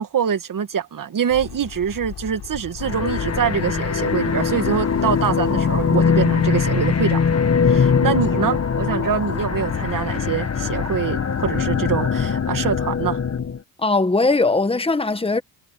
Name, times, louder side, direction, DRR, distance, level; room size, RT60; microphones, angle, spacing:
voice 1, 0.0-7.2 7.6-13.2, right 8 dB, 50° right, 2.3 m, -24 dB
sound 1, 1.3-12.8, left 10 dB, 65° left, 4.9 m, -36 dB
sound 2, 2.8-13.6, left 6 dB, 35° left, 1.9 m, -21 dB
voice 2, 13.8-15.4, left 3 dB, 15° left, 1.6 m, -19 dB
cardioid pair, 85°, 42 cm